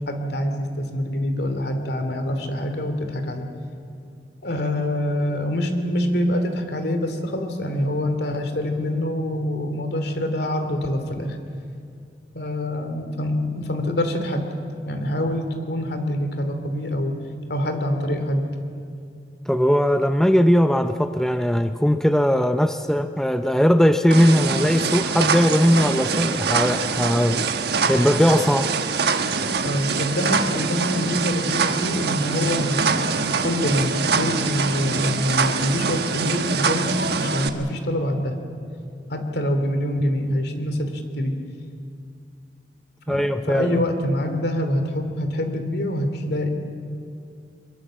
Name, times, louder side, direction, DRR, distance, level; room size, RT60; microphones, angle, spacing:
voice 1, 0.0-3.5 4.4-11.4 12.3-14.5 14.9-17.1 17.5-18.5 29.6-38.4 39.1-41.3 43.1-46.5, left 1 dB, 65° left, 7 dB, 2.8 m, -25 dB
voice 2, 19.5-27.4 27.9-28.7 43.1-43.8, equal, 5° left, 8 dB, 0.6 m, -19 dB
sound 1, 24.1-37.5, right 5 dB, 65° right, 1.3 m, -24 dB
23.5 x 22.0 x 7.7 m, 2.4 s
head